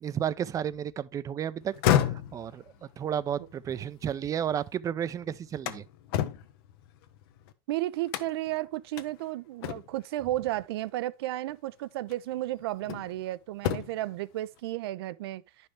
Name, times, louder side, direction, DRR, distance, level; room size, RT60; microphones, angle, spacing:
voice 1, 0.0-1.7 2.0-2.6 3.0-5.8, right 9 dB, 25° right, 0.5 m, -32 dB
sound 1, 1.6-4.7 5.1-7.5 8.1-8.6 9.0-9.1 9.6-10.1 11.4-11.5 12.1-13.2 13.5-14.1, left 11 dB, 75° left, 0.9 m, -31 dB
voice 2, 7.7-15.7, right 15 dB, 85° right, 0.5 m, -33 dB
10.0 x 5.5 x 3.3 m
supercardioid pair, 130°, 13 cm